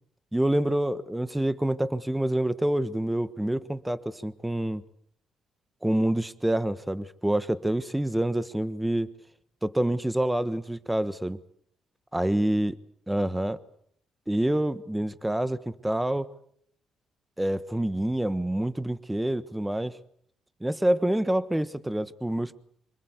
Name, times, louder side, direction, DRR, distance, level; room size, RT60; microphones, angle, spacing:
voice 1, 0.3-4.8 5.8-9.1 9.6-11.4 12.1-12.7 13.1-13.6 14.3-16.3 17.4-20.0 20.6-22.5, right 1 dB, 10° right, 13 dB, 1.2 m, -27 dB
26.0 x 20.5 x 8.2 m, 0.67 s
cardioid pair, 90°, 0 cm